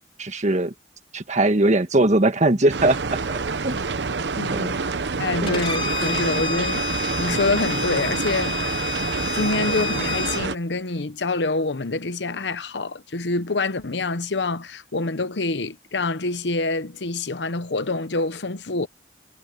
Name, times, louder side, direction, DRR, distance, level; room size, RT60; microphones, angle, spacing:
voice 1, 0.2-0.7 1.1-3.8 4.5-4.7 5.4-5.6, right 2 dB, 45° right, 1.6 m, -21 dB
sound 1, 2.7-10.6, right 4 dB, 80° right, 0.9 m, -27 dB
voice 2, 4.4-6.9 7.2-8.9 9.3-18.9, left 3 dB, 85° left, 1.0 m, -26 dB
Bowed string instrument, 5.5-10.4, left 4 dB, 30° left, 3.5 m, -30 dB
head